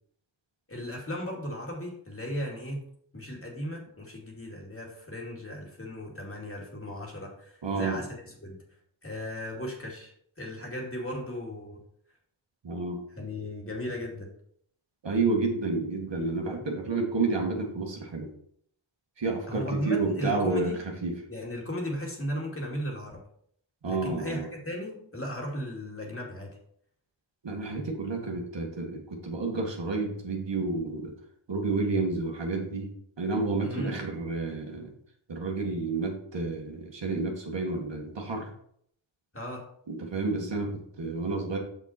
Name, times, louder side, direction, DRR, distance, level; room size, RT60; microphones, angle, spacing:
voice 1, 0.7-2.8 3.1-8.6 9.0-10.1 10.4-11.8 13.2-14.3 19.5-20.8 21.3-23.2 23.8-26.6 33.6-34.0 39.3-39.7, equal, 25° left, -1 dB, 2.5 m, -36 dB
voice 2, 7.6-8.0 12.6-13.0 15.0-18.3 19.2-20.7 21.0-21.1 23.8-24.5 27.4-31.1 31.5-32.9 33.2-34.9 35.3-38.5 39.9-41.6, right 3 dB, 60° right, 0 dB, 1.9 m, -30 dB
6.3 x 6.0 x 4.4 m, 0.66 s
cardioid pair, 60°, 48 cm